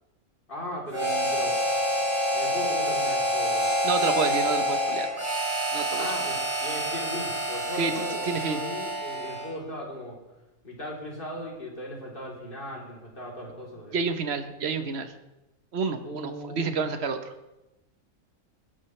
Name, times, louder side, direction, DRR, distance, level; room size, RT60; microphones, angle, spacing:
voice 1, 0.5-1.5 2.3-3.7 6.0-10.2 10.6-14.0 16.0-16.7, left 1 dB, 40° left, -3 dB, 3.6 m, -38 dB
Harmonica, 0.9-9.5, equal, 20° right, 6.2 m, -27 dB
voice 2, 3.8-5.2 5.7-6.1 7.8-8.6 13.9-15.1 15.7-17.3, right 5 dB, 55° right, 8 dB, 1.3 m, -29 dB
20.5 x 11.5 x 3.3 m, 0.99 s
omnidirectional pair, 1.4 m